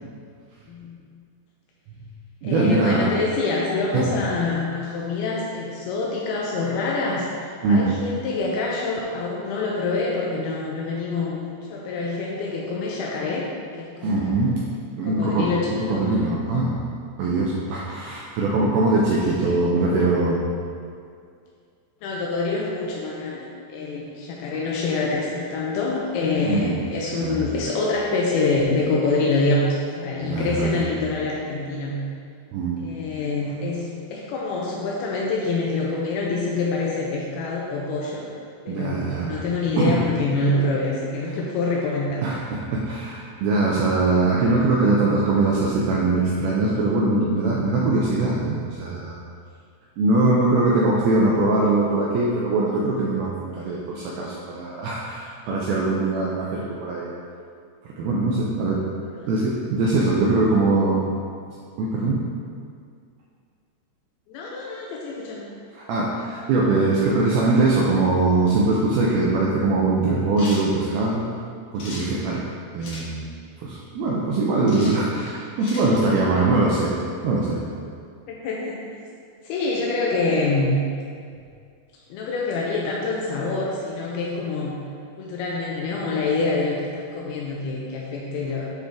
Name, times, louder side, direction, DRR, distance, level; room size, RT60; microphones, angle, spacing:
voice 1, 0.7-1.0 2.4-13.4 13.8-14.5 15.0-16.0 19.5-19.6 22.0-32.0 32.8-38.3 38.7-42.2 59.2-59.3 64.3-65.5 78.3-78.8 79.4-80.8 82.1-84.8 85.2-88.7, left 3 dB, 85° left, -3 dB, 2.3 m, -26 dB
voice 2, 2.4-3.1 3.9-4.1 7.6-7.9 14.0-14.6 15.0-16.8 17.2-20.4 26.4-26.8 27.1-27.5 30.2-30.8 32.5-32.9 38.7-39.3 39.8-40.0 42.2-49.2 50.0-57.1 57.8-58.8 59.3-61.1 61.8-62.2 65.7-71.3 71.7-72.4 72.7-73.3 73.6-76.9 77.2-77.6, right 2 dB, 90° right, -4 dB, 2.2 m, -22 dB
sound 1, 70.4-70.7 71.8-72.1 72.8-73.1 74.7-75.0 75.6-75.9, left 2 dB, 65° left, 1.6 m, -37 dB
11.5 x 4.0 x 3.5 m, 2.3 s
omnidirectional pair, 5.1 m